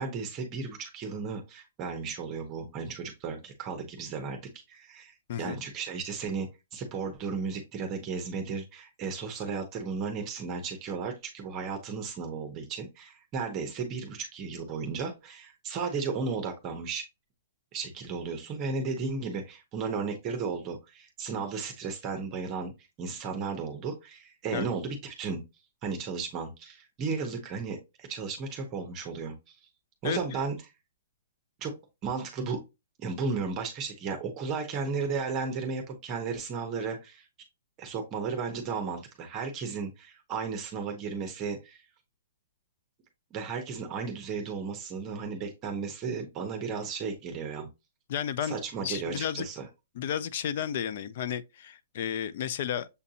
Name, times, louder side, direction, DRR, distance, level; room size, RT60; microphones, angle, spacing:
voice 1, 0.0-4.4 4.7-17.0 17.7-22.7 23.0-25.4 25.8-29.6 30.0-30.5 31.6-31.7 32.0-32.6 33.0-37.3 37.8-41.8 43.3-47.7 48.4-49.7, right 5 dB, 20° right, 0.7 m, -34 dB
voice 2, 5.3-5.6 24.5-24.7 30.0-30.2 48.1-48.6 48.8-49.5 50.0-52.9, left 9 dB, 45° left, 0.4 m, -32 dB
6.8 x 2.5 x 2.8 m
hypercardioid pair, 165°, 0 cm